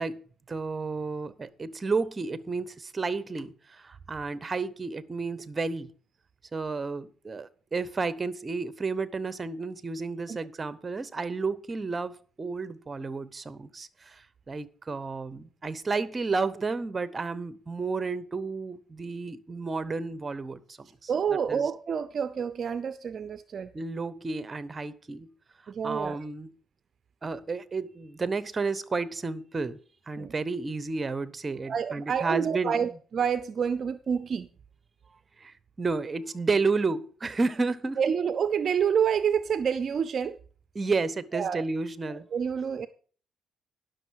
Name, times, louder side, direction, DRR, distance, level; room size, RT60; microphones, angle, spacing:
voice 1, 0.0-5.9 6.5-20.6 21.0-21.1 21.5-21.6 23.7-25.3 25.8-26.5 27.2-29.8 30.1-32.8 35.4-38.0 40.7-42.3, right 4 dB, 30° right, 0.9 m, -31 dB
voice 2, 21.1-23.7 25.7-26.2 30.2-30.3 31.7-34.5 38.0-40.4 41.3-41.6 42.3-42.9, right 7 dB, 50° right, 0.5 m, -28 dB
10.5 x 6.4 x 6.3 m
cardioid pair, 90°, 0 cm